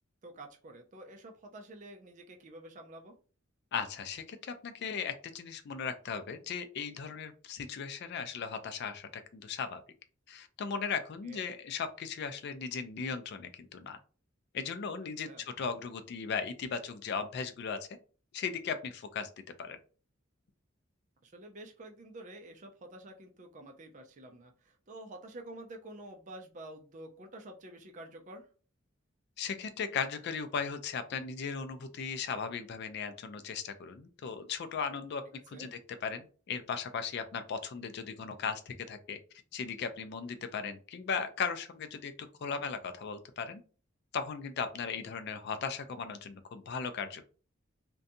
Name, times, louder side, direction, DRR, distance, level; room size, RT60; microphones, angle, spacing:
voice 1, 0.2-3.1 11.2-11.5 15.3-15.4 21.2-28.5 35.5-35.8 42.4-42.6, right 1 dB, 35° right, 4 dB, 0.5 m, -49 dB
voice 2, 3.7-9.8 10.3-14.0 14.5-15.3 15.6-17.9 18.3-19.3 19.6-19.8 29.4-35.2 35.5-39.2 39.5-42.1 42.4-43.6 44.1-47.2, left 6 dB, 55° left, 9 dB, 0.3 m, -37 dB
2.5 x 2.2 x 2.6 m, 0.38 s
head